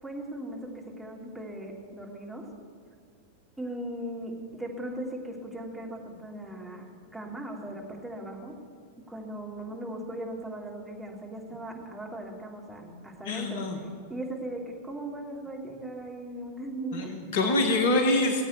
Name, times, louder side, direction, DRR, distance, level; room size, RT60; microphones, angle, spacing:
voice 1, 0.0-0.7 1.0-2.4 3.6-8.5 9.1-13.7 14.1-17.3, right 1 dB, 5° right, -2 dB, 3.0 m, -38 dB
voice 2, 13.2-13.8 16.9-18.4, left 2 dB, 55° left, 5 dB, 1.7 m, -25 dB
18.5 x 8.5 x 8.0 m, 2.3 s
figure-of-eight pair, 90°, 0 cm